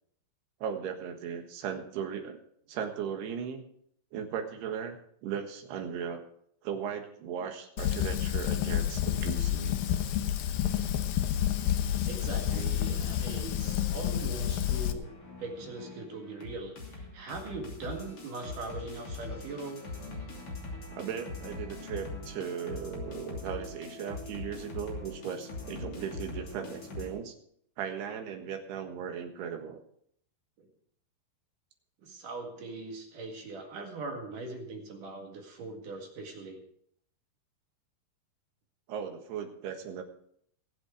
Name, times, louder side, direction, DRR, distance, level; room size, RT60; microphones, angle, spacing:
voice 1, 0.6-2.4 2.7-3.6 4.1-6.3 6.6-9.8 12.5-12.8 20.9-27.4 27.8-29.8 38.9-40.0, right 7 dB, 90° right, 5 dB, 3.6 m, -37 dB
Fire, 7.8-14.9, left 11 dB, 75° left, 2.6 m, -29 dB
voice 2, 12.0-15.1 15.4-19.8 30.6-30.7 32.0-36.6, right 3 dB, 60° right, 2 dB, 3.3 m, -41 dB
sound 1, 13.0-27.1, left 2 dB, 40° left, 3.4 m, -42 dB
20.5 x 7.9 x 4.8 m, 0.68 s
omnidirectional pair, 4.6 m